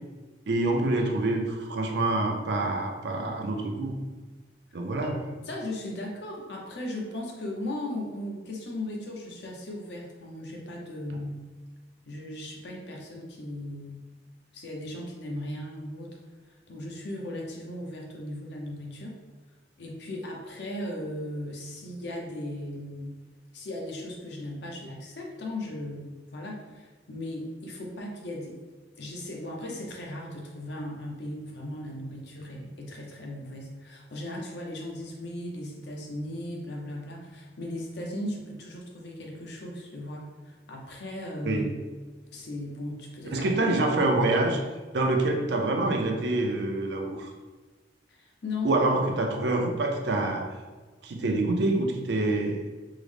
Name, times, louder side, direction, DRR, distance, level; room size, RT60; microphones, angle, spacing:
voice 1, 0.5-3.9 4.7-5.2 11.1-11.2 41.5-41.7 43.3-44.6 44.9-47.3 48.6-50.5 51.0-52.7, right 2 dB, 65° right, 3 dB, 0.5 m, -26 dB
voice 2, 5.4-11.3 12.1-14.0 14.5-16.2 16.5-19.2 19.8-23.2 23.5-28.6 29.0-41.7 42.3-43.5 48.1-48.7, left 1 dB, 65° left, 0 dB, 0.7 m, -37 dB
3.7 x 2.0 x 3.3 m, 1.3 s
head